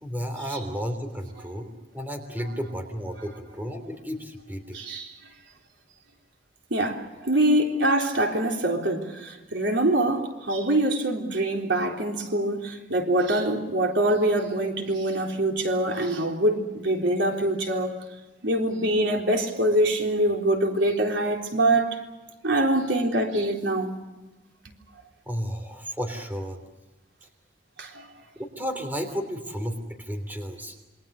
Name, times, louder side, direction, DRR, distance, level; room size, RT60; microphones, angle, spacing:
voice 1, 0.0-4.8 25.3-26.6 28.3-30.7, equal, 10° right, 3.3 m, -33 dB
voice 2, 4.7-5.1 6.7-18.0 18.4-22.0 22.4-23.9 27.8-28.1, right 1 dB, 80° right, 3.9 m, -24 dB
28.0 x 24.0 x 6.7 m
head